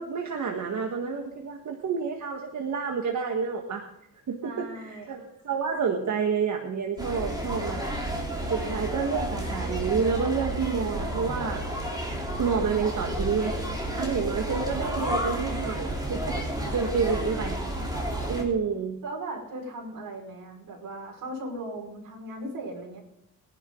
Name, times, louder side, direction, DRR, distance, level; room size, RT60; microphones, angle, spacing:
voice 1, 0.0-3.8 4.3-7.9 8.5-11.7 12.4-13.6 13.9-16.4 16.7-17.6 18.3-19.0, right 6 dB, 60° right, 2 dB, 1.7 m, -29 dB
voice 2, 4.4-5.1 19.0-23.0, right 1 dB, 75° right, -1 dB, 5.3 m, -38 dB
sound 1, 7.0-18.4, right 1 dB, 10° right, 3.6 m, -31 dB
22.0 x 11.0 x 3.9 m, 0.78 s
wide cardioid pair, 140°, 33 cm